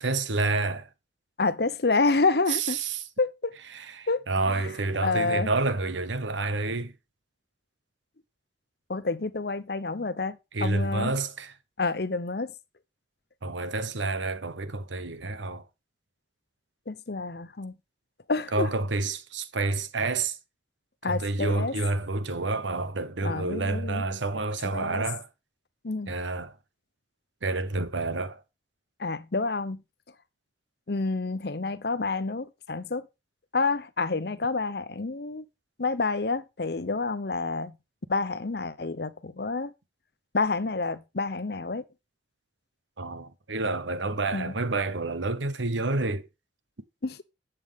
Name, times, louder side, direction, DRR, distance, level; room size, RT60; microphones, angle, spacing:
voice 1, 0.0-0.9 2.5-3.0 3.7-6.9 10.5-11.5 13.4-15.6 18.5-20.4 21.1-25.3 26.1-26.5 27.4-28.4 43.0-46.3, right 3 dB, 85° right, 1.1 m, -29 dB
voice 2, 1.4-2.8 3.2-3.5 4.1-4.6 5.0-5.5 8.9-11.1 11.8-12.5 16.9-17.7 18.3-18.7 21.0-21.7 23.2-24.0 24.7-25.0 25.8-26.1 29.0-29.8 30.9-33.1 33.5-35.4 35.8-37.7 38.1-39.7 40.3-41.8 44.3-44.5 47.0-47.2, left 3 dB, 55° left, 0.8 m, -28 dB
11.0 x 8.0 x 3.6 m
head